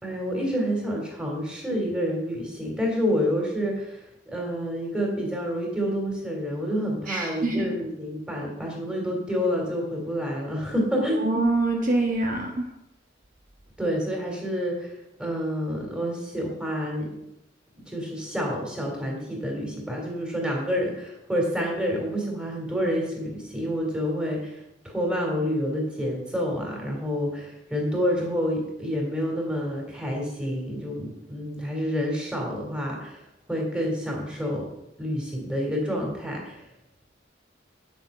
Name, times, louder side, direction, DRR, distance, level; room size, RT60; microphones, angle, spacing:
voice 1, 0.0-11.3 13.8-14.9 15.2-17.1 17.9-33.2 33.5-34.7 35.0-36.6, equal, 5° right, -1 dB, 3.0 m, -28 dB
voice 2, 7.1-7.7 11.2-12.7, right 2 dB, 45° right, 1 dB, 1.2 m, -25 dB
9.2 x 7.9 x 5.4 m, 0.81 s
head